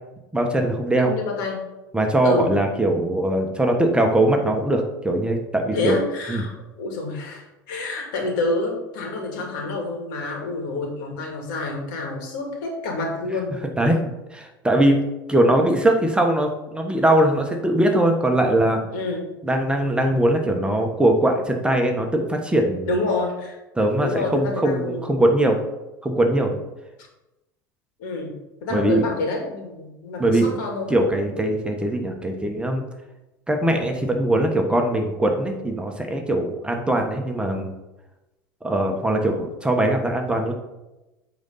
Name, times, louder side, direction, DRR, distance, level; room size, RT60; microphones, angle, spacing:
voice 1, 0.3-1.1 1.9-6.0 6.3-6.4 13.8-15.0 15.3-18.8 19.4-22.9 23.8-25.6 26.0-26.6 28.7-29.1 30.2-30.5 30.9-32.9 33.5-37.7 38.6-40.5, right 1 dB, 10° right, 3 dB, 1.3 m, -21 dB
voice 2, 1.0-1.6 2.2-2.5 5.7-6.5 6.8-13.6 18.9-19.3 22.9-23.6 24.0-25.0 28.0-28.3 28.6-31.0, left 3 dB, 70° left, 1 dB, 2.4 m, -28 dB
8.6 x 4.0 x 5.6 m, 0.99 s
hypercardioid pair, 85°, 11 cm